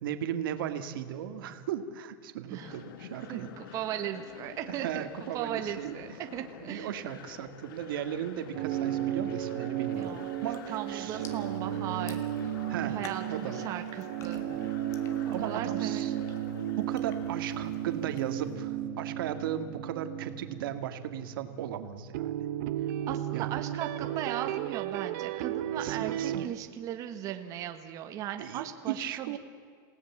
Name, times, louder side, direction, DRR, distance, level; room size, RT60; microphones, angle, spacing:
voice 1, 0.0-3.6 4.7-6.2 6.6-10.6 10.9-11.2 12.7-13.0 13.3-13.6 15.3-16.1 16.8-22.3 23.3-23.5 25.8-26.5 28.4-29.4, right 10 dB, 90° right, 9 dB, 2.0 m, -36 dB
sound 1, 2.6-18.9, left 9 dB, 80° left, 1.8 m, -48 dB
voice 2, 3.3-6.9 10.0-12.5 12.8-14.5 15.4-16.2 23.1-29.4, right 11 dB, 30° right, 6 dB, 1.5 m, -37 dB
sound 2, 8.5-26.5, right 11 dB, 55° right, 1.1 m, -34 dB
sound 3, 9.9-18.6, left 6 dB, 25° left, 1.9 m, -54 dB
28.5 x 17.5 x 7.4 m, 2.1 s
supercardioid pair, 175°, 11 cm